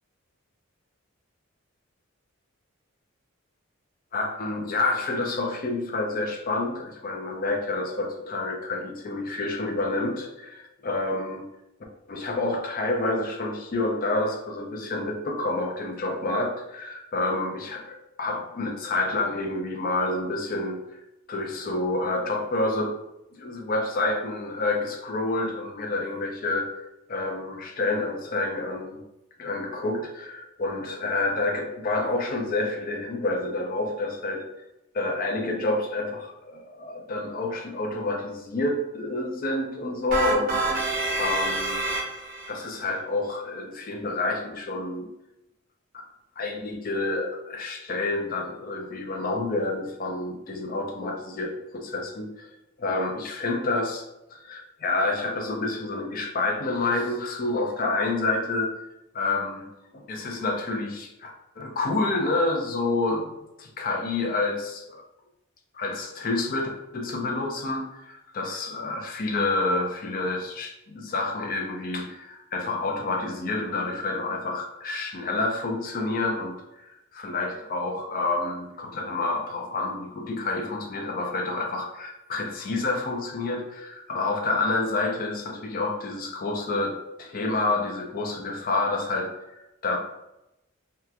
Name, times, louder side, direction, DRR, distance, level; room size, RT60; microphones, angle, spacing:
voice 1, 4.1-11.5 12.1-21.0 21.3-23.0 23.3-29.0 29.4-34.4 34.9-41.9 42.5-45.1 45.9-46.1 46.4-52.5 52.8-54.0 54.3-58.7 59.1-59.7 59.9-63.3 63.6-65.0 65.7-89.3 89.8-90.0, left 2 dB, 40° left, 2 dB, 0.4 m, -28 dB
sound 1, 40.1-42.5, right 3 dB, 40° right, 0.6 m, -27 dB
2.8 x 2.2 x 2.3 m, 0.91 s
head